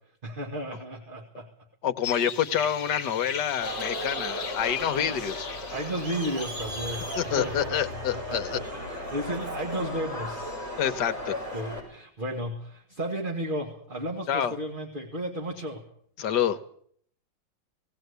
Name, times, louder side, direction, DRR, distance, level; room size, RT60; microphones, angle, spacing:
voice 1, 0.2-1.5 5.7-10.6 11.5-15.9, right 1 dB, 30° right, 3 dB, 1.9 m, -34 dB
voice 2, 1.8-5.5 7.2-8.6 10.8-11.3 14.3-14.5 16.2-16.6, left 9 dB, 65° left, 11 dB, 1.5 m, -27 dB
sound 1, 2.0-7.7, left 7 dB, 50° left, 1.6 m, -38 dB
Crowd, 3.6-11.8, left 1 dB, 50° right, 6.4 m, -36 dB
18.0 x 18.0 x 8.1 m, 0.63 s
omnidirectional pair, 2.0 m